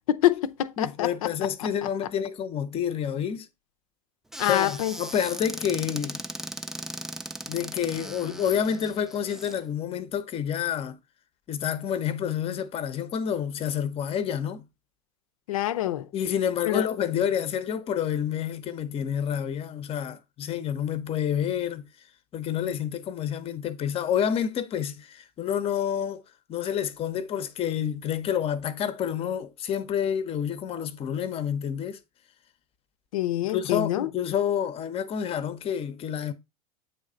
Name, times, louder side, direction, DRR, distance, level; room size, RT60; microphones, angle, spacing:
voice 1, 0.0-1.1 4.4-4.9 15.5-16.1 16.7-16.9 33.1-34.1, left 13 dB, 65° left, 0.6 m, -25 dB
voice 2, 0.8-3.5 4.4-6.2 7.5-11.0 11.5-14.6 16.1-21.8 22.3-26.2 26.5-32.0 33.4-36.3, left 8 dB, 30° left, 0.7 m, -29 dB
Squeak / Cupboard open or close, 4.3-9.6, right 1 dB, ahead, 0.4 m, -38 dB
8.0 x 3.2 x 3.8 m
hypercardioid pair, 85°, 19 cm